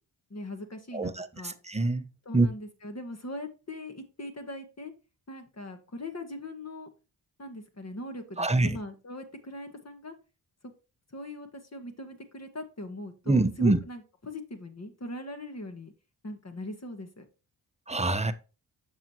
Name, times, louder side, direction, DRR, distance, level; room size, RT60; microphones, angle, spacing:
voice 1, 0.3-1.5 2.2-4.9 5.3-6.9 7.4-10.1 10.6-10.7 11.1-15.9 16.2-17.2, left 1 dB, 35° left, 1.7 m, -40 dB
voice 2, 0.9-2.1 2.3-2.5 8.4-8.8 13.3-13.8 17.9-18.3, right 2 dB, 15° right, 0.9 m, -25 dB
7.1 x 6.7 x 2.9 m
cardioid pair, 45°, 47 cm